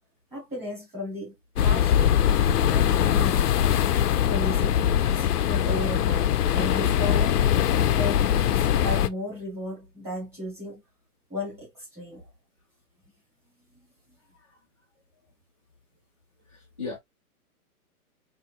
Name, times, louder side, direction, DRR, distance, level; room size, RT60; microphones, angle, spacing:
voice 1, 0.3-1.3 1.6-2.2 2.7-3.5 4.1-7.4 7.9-10.8 11.3-12.3, left 1 dB, 5° right, 1.6 m, -35 dB
sound 1, 1.6-9.1, left 10 dB, 85° left, 0.6 m, -22 dB
voice 2, 16.5-17.0, left 4 dB, 25° left, 0.4 m, -37 dB
4.2 x 2.6 x 2.3 m
hypercardioid pair, 160°, 45 cm